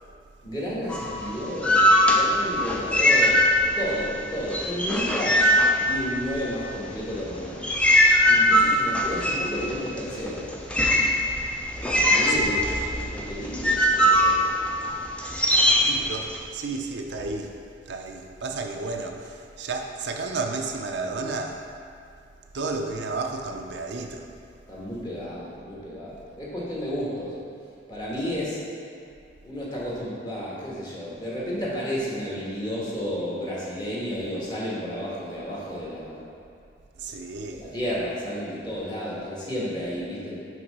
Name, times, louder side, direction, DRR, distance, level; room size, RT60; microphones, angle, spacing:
voice 1, 0.4-3.4 3.8-7.7 8.3-10.9 11.7-14.4 24.7-27.4 27.9-28.6 29.4-36.2 37.6-40.4, equal, 25° left, -7 dB, 1.4 m, -32 dB
sound 1, 0.9-4.0 4.3-6.5 7.1-16.4, left 1 dB, 5° left, 0.5 m, -21 dB
voice 2, 12.1-12.8 15.4-15.5 15.8-17.6 17.9-21.7 22.5-24.3 37.0-37.7, right 3 dB, 70° right, 3 dB, 0.5 m, -32 dB
5.8 x 3.7 x 5.3 m, 2.4 s
head